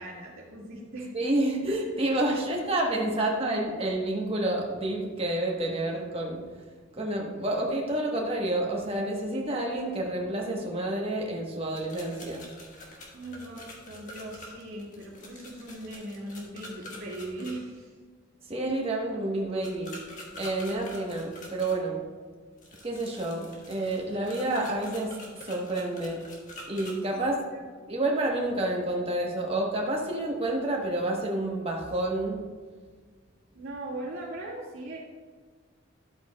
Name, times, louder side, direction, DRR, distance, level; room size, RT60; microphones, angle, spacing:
voice 1, 0.0-1.1 1.7-1.8 2.5-2.6 13.1-17.9 27.2-27.3 27.5-27.6 33.5-35.0, right 1 dB, 80° right, -9 dB, 1.8 m, -39 dB
voice 2, 1.1-6.4 6.9-12.4 18.5-19.9 20.4-22.0 22.8-25.2 25.4-26.2 26.7-27.4 27.9-32.4, right 1 dB, 30° right, 0 dB, 1.1 m, -29 dB
sound 1, 11.7-17.5 19.6-21.8 22.6-26.9, left 1 dB, 40° left, 1.5 m, -46 dB
11.5 x 7.8 x 2.3 m, 1.5 s
head